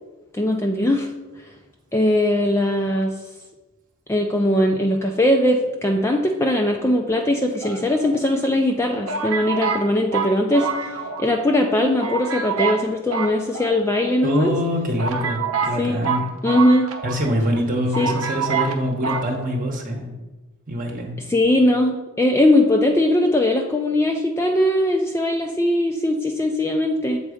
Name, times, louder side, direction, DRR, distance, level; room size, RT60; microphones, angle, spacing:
voice 1, 0.3-1.1 1.4-1.5 1.9-3.1 4.1-14.5 15.8-16.0 16.4-16.9 18.0-18.1 21.3-27.2, left 1 dB, 10° left, 2 dB, 0.4 m, -20 dB
sound 1, 7.6-8.4 9.1-11.4 11.6-11.7 12.0-12.8 13.1-14.1 14.6-14.7 15.0-17.3 17.6-17.7 17.9-18.8 19.0-19.3, right 5 dB, 90° right, 0.8 m, -26 dB
voice 2, 14.2-16.3 17.0-20.1 20.7-21.1, equal, 40° right, 1 dB, 0.9 m, -24 dB
7.4 x 4.0 x 4.9 m, 1.1 s
head